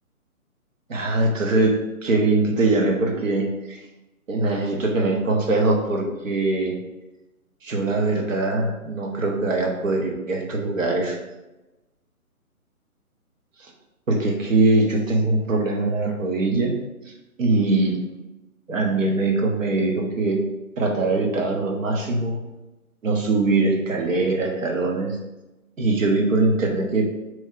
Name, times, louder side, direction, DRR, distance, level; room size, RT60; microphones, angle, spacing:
voice 1, 0.9-3.8 4.3-6.7 7.6-11.2 14.1-16.7 17.4-18.0 18.7-20.4 20.8-22.4 23.0-25.2 25.8-27.1, right 2 dB, 60° right, 2 dB, 1.0 m, -22 dB
4.2 x 3.1 x 3.6 m, 1.0 s
figure-of-eight pair, 140°, 44 cm